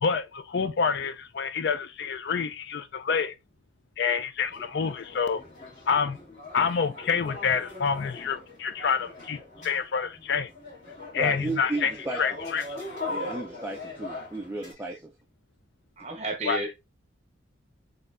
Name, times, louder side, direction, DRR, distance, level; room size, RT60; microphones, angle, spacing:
voice 1, 0.0-3.3 4.0-5.4 5.9-6.2 6.5-9.4 9.6-10.5 11.1-12.7 16.4-16.6, left 6 dB, 55° left, 0.4 m, -27 dB
sound 1, 4.4-14.7, left 2 dB, 35° left, 2.4 m, -40 dB
voice 2, 11.1-12.2 13.1-15.1, right 2 dB, 10° right, 0.4 m, -34 dB
voice 3, 16.0-16.7, right 2 dB, 35° right, 0.8 m, -32 dB
4.3 x 3.1 x 2.4 m
head